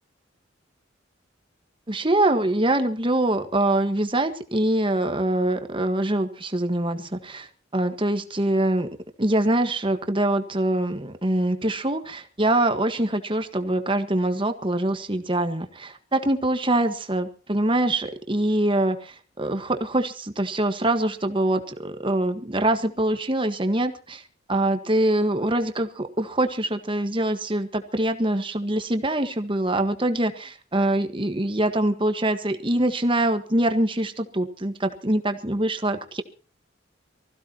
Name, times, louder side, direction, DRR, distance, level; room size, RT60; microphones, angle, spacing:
voice 1, 1.9-8.9 9.2-24.2 24.5-36.2, right 1 dB, 25° right, 8 dB, 1.5 m, -24 dB
24.5 x 15.5 x 3.0 m, 0.37 s
head